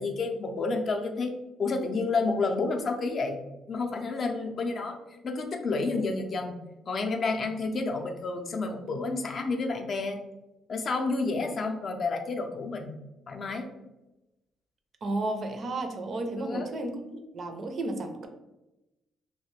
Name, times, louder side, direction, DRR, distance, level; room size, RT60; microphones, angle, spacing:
voice 1, 0.0-1.3 1.6-3.4 3.7-5.0 5.2-6.6 6.9-10.2 10.7-12.9 13.3-13.7 16.4-16.7, left 3 dB, 50° left, 4 dB, 0.4 m, -30 dB
voice 2, 15.0-18.3, right 2 dB, 50° right, 6 dB, 0.4 m, -33 dB
2.3 x 2.1 x 3.1 m, 0.97 s
cardioid pair, 90°, 0 cm